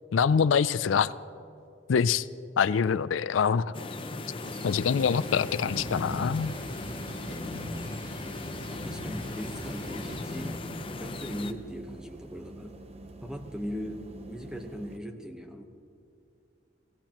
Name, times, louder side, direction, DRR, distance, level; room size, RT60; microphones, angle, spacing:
voice 1, 0.1-1.1 1.9-2.3 2.6-3.7 4.6-6.5, left 6 dB, 85° left, 16 dB, 0.4 m, -25 dB
sound 1, 3.7-11.5, left 2 dB, 25° left, 0.6 m, -38 dB
sound 2, 4.4-10.6, equal, 60° right, 3.5 m, -41 dB
sound 3, 5.7-15.0, right 2 dB, 35° right, 0.8 m, -47 dB
voice 2, 8.7-10.6 10.9-12.8 13.2-14.0 14.3-15.6, equal, 5° right, 4 dB, 1.0 m, -39 dB
27.0 x 17.5 x 3.0 m, 2.6 s
head